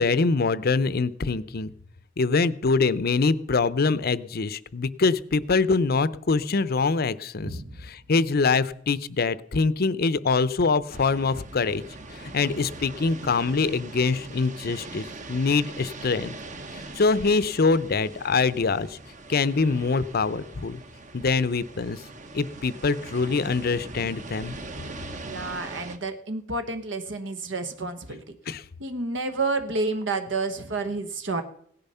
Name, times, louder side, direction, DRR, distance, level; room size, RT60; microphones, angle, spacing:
voice 1, 0.0-1.7 2.2-11.8 12.1-16.3 16.7-19.0 19.3-20.8 21.1-22.0 22.3-24.6 28.5-28.6, left 4 dB, 55° left, 17 dB, 0.6 m, -24 dB
voice 2, 7.4-7.8 25.2-28.4 28.8-31.4, right 3 dB, 70° right, 8 dB, 1.2 m, -30 dB
sound 1, 10.9-26.0, right 2 dB, 40° right, 1.2 m, -41 dB
17.0 x 10.5 x 5.6 m, 0.67 s
head